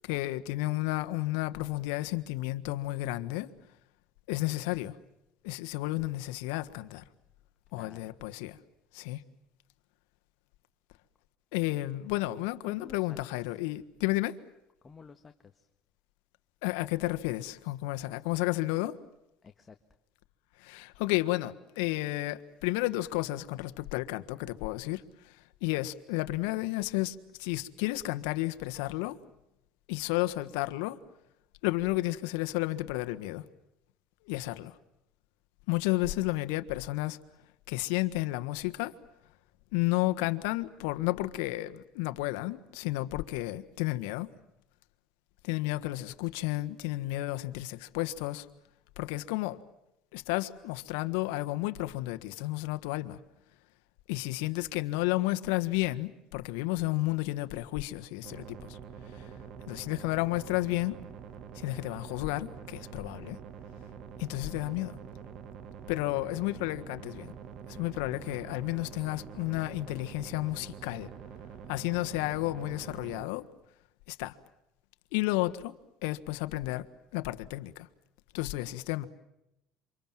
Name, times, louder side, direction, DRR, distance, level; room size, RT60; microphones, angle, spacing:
voice 1, 0.0-3.5 4.3-4.9 5.4-7.0 7.7-8.6 8.9-9.2 11.5-14.4 16.6-19.0 20.6-25.3 25.6-29.2 29.9-31.0 31.6-33.4 34.2-34.7 35.7-37.2 37.7-38.9 39.7-44.3 45.4-48.5 49.0-49.6 50.1-53.2 54.1-58.8 59.1-59.3 59.7-61.0 61.5-63.4 64.2-65.0 65.9-67.3 67.7-71.1 71.7-73.4 74.1-74.4 75.1-75.7 76.0-76.9 77.1-77.9 78.3-79.0, left 19 dB, 85° left, 1.5 m, -32 dB
voice 2, 7.7-8.1 12.7-13.2 14.8-15.7 19.4-19.7, left 5 dB, 25° left, 1.6 m, -51 dB
sound 1, 58.2-73.3, right 7 dB, 50° right, 2.1 m, -46 dB
28.5 x 26.0 x 7.6 m
supercardioid pair, 115°, 0 cm